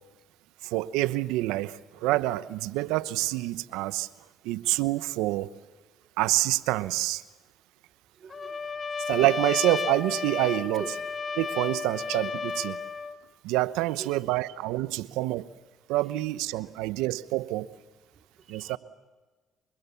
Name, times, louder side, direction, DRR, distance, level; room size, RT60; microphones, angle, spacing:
voice 1, 0.6-4.1 4.4-5.5 6.2-7.2 9.1-10.8 11.4-12.8 13.4-15.5 15.9-17.7 18.5-18.8, right 17 dB, 85° right, 15 dB, 0.9 m, -27 dB
voice 2, 8.1-8.7 10.7-10.9 11.8-12.0 12.7-12.8 13.8-14.4 16.5-16.6 18.1-18.8, right 6 dB, 50° right, 4 dB, 3.3 m, -45 dB
Trumpet, 8.3-13.2, left 5 dB, 35° left, 1.9 m, -33 dB
29.5 x 25.0 x 7.1 m, 1.3 s
supercardioid pair, 65°, 0 cm